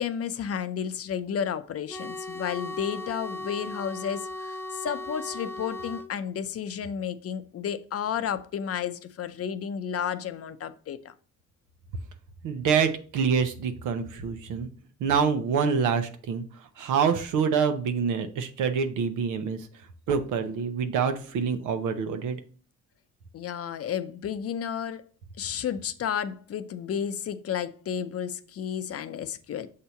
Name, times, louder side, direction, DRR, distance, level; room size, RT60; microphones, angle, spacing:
voice 1, 0.0-11.0 23.3-25.0 25.4-29.7, left 8 dB, 50° left, 0.6 m, -32 dB
sound 1, 1.9-6.1, left 2 dB, 10° left, 0.4 m, -37 dB
voice 2, 12.4-14.7 15.0-16.4 16.8-19.7 20.1-22.4, right 6 dB, 90° right, 0.8 m, -26 dB
6.7 x 2.8 x 5.7 m
cardioid pair, 90°, 30 cm